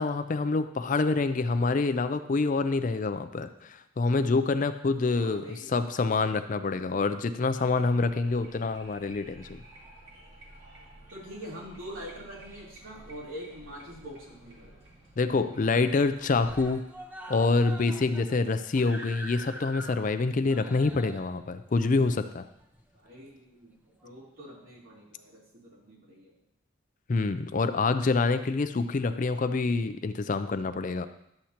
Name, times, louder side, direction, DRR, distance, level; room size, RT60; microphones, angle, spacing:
voice 1, 0.0-9.6 15.2-16.8 17.3-22.4 27.1-31.1, left 3 dB, 40° left, 11 dB, 0.4 m, -26 dB
voice 2, 5.2-6.0 11.1-14.7 22.9-26.3, equal, 70° right, -6 dB, 3.4 m, -44 dB
sound 1, 7.5-16.8, right 1 dB, 50° right, 2.4 m, -52 dB
Screaming, 13.5-14.4 14.7-14.8 15.1-15.2 15.5-16.0 16.3-23.2 24.0-24.1, equal, 10° right, 0.6 m, -45 dB
11.5 x 7.7 x 2.9 m, 0.78 s
head